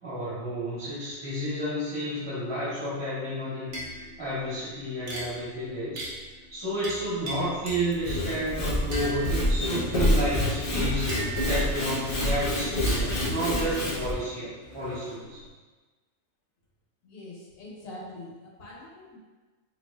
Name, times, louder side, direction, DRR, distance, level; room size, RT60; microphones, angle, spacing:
voice 1, 0.0-6.1 6.5-15.4, equal, 20° right, -10 dB, 1.4 m, -31 dB
sound 1, 3.7-8.4 8.9-15.5, right 1 dB, 60° right, 1.0 m, -40 dB
Sawing / Wood, 7.9-14.1, left 1 dB, 50° left, 0.4 m, -27 dB
voice 2, 17.0-19.2, left 1 dB, 75° left, -5 dB, 1.3 m, -44 dB
3.9 x 3.1 x 2.3 m, 1.3 s
omnidirectional pair, 1.4 m